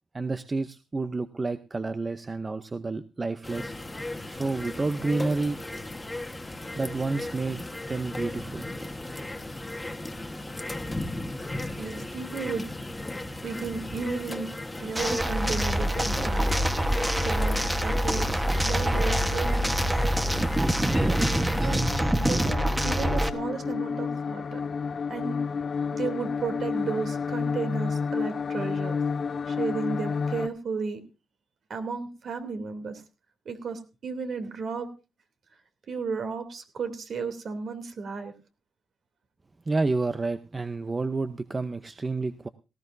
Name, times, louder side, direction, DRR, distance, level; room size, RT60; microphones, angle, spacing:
voice 1, 0.1-3.7 4.2-5.6 6.8-7.6 7.9-8.7 39.7-42.5, right 3 dB, 25° right, 10 dB, 0.7 m, -29 dB
sound 1, 3.4-21.8, left 2 dB, 15° left, 1.5 m, -36 dB
voice 2, 11.8-12.7 13.4-14.5 14.8-16.9 17.2-19.8 21.0-21.2 21.6-21.9 22.3-24.6 25.1-25.4 25.9-29.0 29.5-31.0 31.7-33.0 33.4-34.9 35.9-38.3, right 5 dB, 60° right, 7 dB, 3.0 m, -34 dB
sound 2, 14.9-23.3, equal, 10° right, 1.2 m, -25 dB
sound 3, 21.8-30.5, left 5 dB, 45° left, 0.6 m, -30 dB
18.5 x 15.0 x 2.7 m, 0.30 s
cardioid pair, 90°, 0 cm